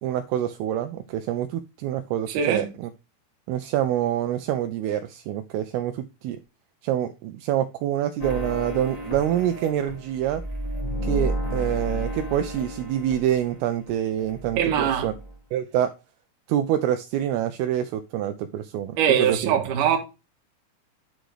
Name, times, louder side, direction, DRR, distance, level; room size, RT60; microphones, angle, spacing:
voice 1, 0.0-2.9 3.5-6.4 6.8-10.4 11.0-15.1 15.5-15.9 16.5-19.5, right 11 dB, 80° right, 2.4 m, -26 dB
voice 2, 2.3-2.6 14.6-15.1 19.0-20.0, right 8 dB, 65° right, 2.4 m, -22 dB
sound 1, 8.2-13.9 14.2-15.4, equal, 30° left, 0.6 m, -32 dB
10.0 x 3.9 x 4.8 m
omnidirectional pair, 4.7 m